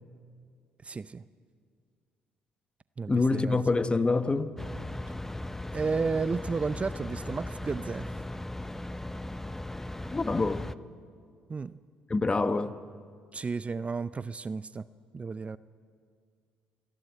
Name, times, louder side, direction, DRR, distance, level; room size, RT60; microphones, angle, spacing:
voice 1, 0.8-1.2 3.0-3.6 5.7-8.1 11.5-11.8 13.3-14.9 15.1-15.6, right 4 dB, 30° right, 0.5 m, -32 dB
voice 2, 3.1-4.5 10.1-10.7 12.1-12.8, left 3 dB, 25° left, 1.1 m, -26 dB
sound 1, 4.6-10.7, left 1 dB, 10° left, 0.7 m, -38 dB
27.5 x 11.5 x 9.2 m
hypercardioid pair, 55°, 4 cm